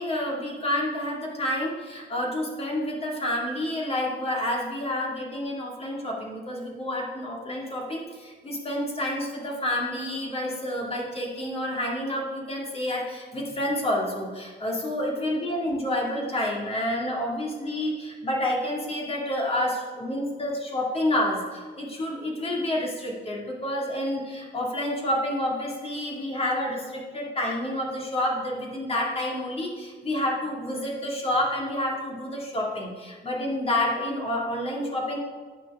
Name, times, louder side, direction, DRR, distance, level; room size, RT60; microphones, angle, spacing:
voice 1, 0.0-35.2, left 1 dB, 35° left, -2 dB, 2.2 m, -29 dB
10.5 x 6.9 x 3.6 m, 1.4 s
cardioid pair, 95°, 18 cm